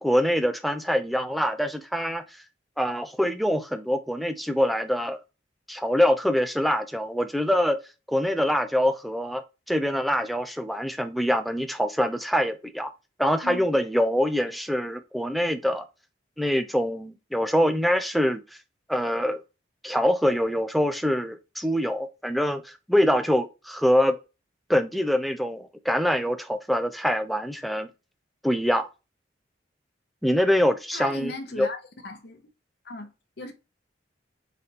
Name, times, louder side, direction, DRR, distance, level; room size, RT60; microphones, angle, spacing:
voice 1, 0.0-2.2 2.8-5.2 5.7-7.8 8.1-9.4 9.7-12.9 13.2-15.8 16.4-18.4 18.9-19.4 19.8-24.1 24.7-27.9 28.4-28.9 30.2-31.7, equal, ahead, 0.3 m, -24 dB
voice 2, 30.9-31.8 32.0-32.4 32.8-33.5, left 1 dB, 55° left, 0.8 m, -37 dB
4.0 x 3.3 x 2.8 m
head